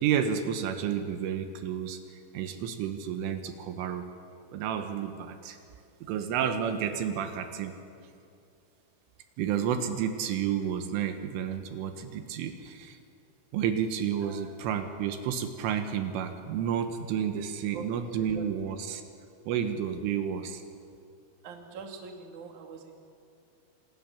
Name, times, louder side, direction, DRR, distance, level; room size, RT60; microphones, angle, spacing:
voice 1, 0.0-4.1 4.5-5.6 6.0-7.8 9.4-13.0 13.5-19.0 19.5-20.6, right 8 dB, 80° right, 7 dB, 3.8 m, -31 dB
voice 2, 14.2-14.7 17.2-17.3 17.6-17.9 18.2-18.5 21.4-23.1, right 5 dB, 45° right, 3 dB, 3.2 m, -44 dB
27.5 x 26.5 x 7.3 m, 2.5 s
omnidirectional pair, 5.8 m